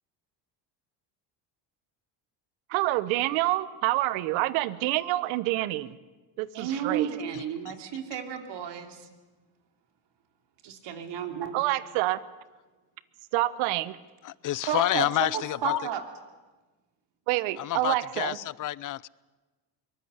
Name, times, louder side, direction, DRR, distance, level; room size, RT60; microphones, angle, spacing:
voice 1, 2.7-6.0 6.4-7.1 11.5-12.2 13.3-14.0 17.3-18.4, right 17 dB, 80° right, 1.1 m, -27 dB
voice 2, 6.5-9.1 10.6-11.6 14.6-16.0, right 9 dB, 65° right, 3.1 m, -32 dB
voice 3, 14.2-15.8 17.6-19.1, left 14 dB, 45° left, 0.6 m, -28 dB
23.0 x 19.0 x 8.2 m
supercardioid pair, 90°, 46 cm